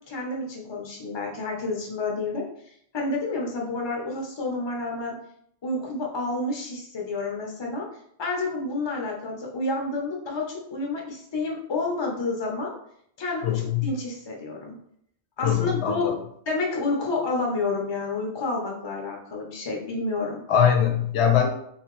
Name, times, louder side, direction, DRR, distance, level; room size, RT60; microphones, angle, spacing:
voice 1, 0.1-2.5 2.9-5.2 5.6-7.9 8.2-12.8 13.2-14.8 15.4-16.1 16.5-20.4, left 3 dB, 30° left, -1 dB, 0.6 m, -29 dB
voice 2, 13.4-13.9 15.4-16.1 20.5-21.5, left 8 dB, 80° left, 4 dB, 0.8 m, -22 dB
3.2 x 2.9 x 3.0 m, 0.69 s
omnidirectional pair, 1.1 m